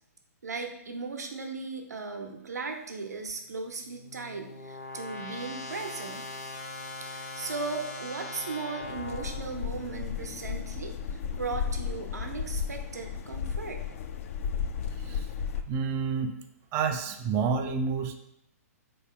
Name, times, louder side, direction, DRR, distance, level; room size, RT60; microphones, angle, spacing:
voice 1, 0.4-6.3 7.0-13.8, right 4 dB, 85° right, 3 dB, 0.7 m, -37 dB
sound 1, 3.3-10.4, left 2 dB, 80° left, 1.3 m, -41 dB
sound 2, 8.8-15.6, left 7 dB, 55° left, 0.4 m, -34 dB
voice 2, 15.7-16.3 16.7-18.1, right 5 dB, 30° right, 7 dB, 0.3 m, -29 dB
4.0 x 3.0 x 3.6 m, 0.79 s
hypercardioid pair, 125°, 9 cm